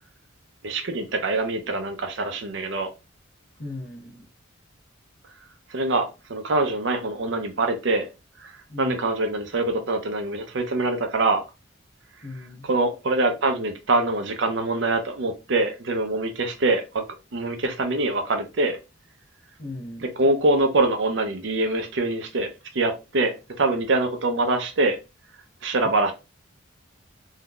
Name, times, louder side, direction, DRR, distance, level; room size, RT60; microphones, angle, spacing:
voice 1, 0.6-2.9 5.7-8.1 8.4-11.4 12.6-17.0 17.3-18.8 20.2-25.0 25.6-26.1, right 2 dB, 60° right, 0.6 m, -24 dB
voice 2, 3.6-4.3 8.7-9.0 12.2-12.7 19.6-20.1, left 2 dB, 45° left, 0.9 m, -37 dB
3.7 x 2.7 x 2.3 m
head